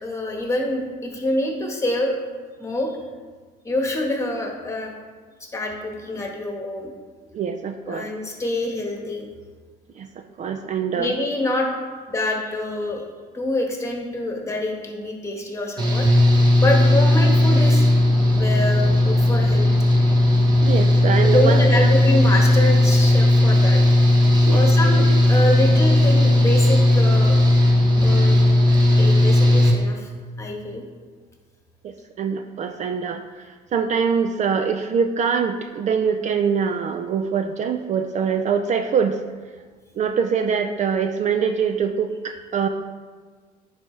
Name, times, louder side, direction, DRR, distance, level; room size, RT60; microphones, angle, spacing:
voice 1, 0.0-2.1 2.6-3.0 3.6-4.9 5.5-6.9 7.9-9.3 11.0-11.7 12.1-13.0 13.3-16.1 16.6-17.8 18.3-19.7 21.2-23.8 24.5-27.4 28.0-28.4 29.0-30.1 30.4-30.8, left 1 dB, 15° left, 0 dB, 1.4 m, -26 dB
voice 2, 7.3-8.1 10.0-10.1 10.4-11.1 20.6-21.9 24.4-24.6 31.8-33.2 33.7-39.2 40.0-42.7, right 6 dB, 45° right, 6 dB, 0.4 m, -23 dB
Engine / Mechanical fan, 15.8-29.7, left 1 dB, 25° right, 1.4 m, -16 dB
10.0 x 4.8 x 3.3 m, 1.5 s
cardioid pair, 110°, 17 cm